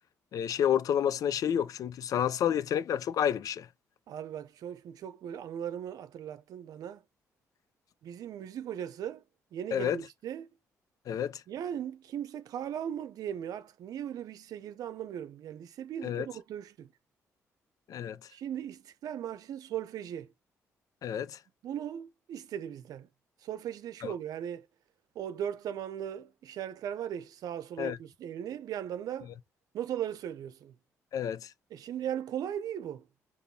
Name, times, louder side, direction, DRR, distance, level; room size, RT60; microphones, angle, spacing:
voice 1, 0.3-3.7 9.7-10.0 11.1-11.4 16.0-16.3 17.9-18.2 21.0-21.4 24.0-24.1 27.8-28.0 31.1-31.5, left 9 dB, 65° left, 0.5 m, -29 dB
voice 2, 4.1-7.0 8.0-9.2 9.5-10.5 11.5-16.9 18.3-20.3 21.6-23.1 23.4-24.7 25.1-29.3 29.7-30.7 31.7-33.1, right 9 dB, 75° right, 0.6 m, -38 dB
5.1 x 2.6 x 2.8 m
supercardioid pair, 60°, 6 cm